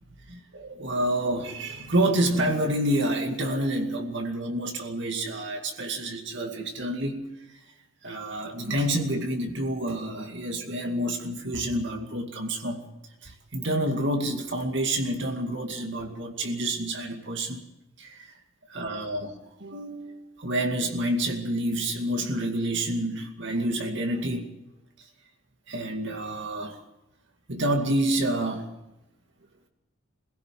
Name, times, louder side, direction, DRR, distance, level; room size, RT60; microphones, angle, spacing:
voice 1, 0.3-7.3 8.0-12.8 13.2-17.6 18.0-18.4 18.7-24.5 25.0-25.1 25.7-26.8 27.5-28.7, right 1 dB, 55° right, 3 dB, 2.3 m, -28 dB
23.5 x 16.5 x 7.6 m, 0.94 s
head